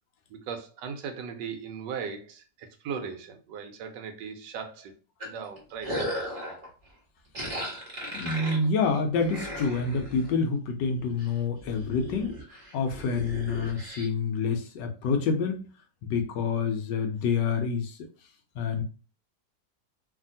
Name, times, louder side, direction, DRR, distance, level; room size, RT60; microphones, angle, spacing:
voice 1, 0.3-4.9 5.2-6.0, right 6 dB, 75° right, 1.2 m, -38 dB
sound 1, 5.2-6.7 7.3-10.4 10.8-11.3 11.6-14.1, equal, 30° right, 0.7 m, -36 dB
voice 2, 8.1-12.3 12.7-15.7 16.0-18.0 18.6-18.8, left 4 dB, 80° left, 1.2 m, -27 dB
2.8 x 2.7 x 2.6 m
omnidirectional pair, 1.9 m